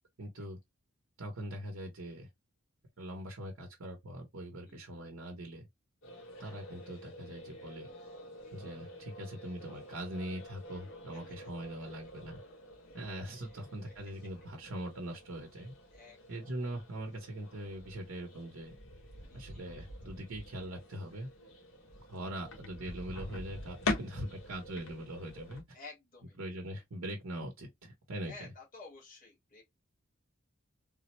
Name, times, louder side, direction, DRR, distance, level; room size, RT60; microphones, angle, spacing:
voice 1, 0.2-0.6 1.2-2.3 3.0-5.7 6.4-7.9 8.5-12.4 12.9-15.7 16.3-18.7 19.3-21.3 22.0-25.8 26.4-28.5, right 1 dB, 85° right, 0.9 m, -42 dB
sound 1, 6.0-25.6, left 2 dB, 75° left, 1.1 m, -45 dB
voice 2, 13.4-13.9 15.9-16.2 19.3-19.6 25.7-26.4 28.2-29.7, left 3 dB, 40° left, 1.4 m, -52 dB
3.6 x 2.0 x 3.0 m
head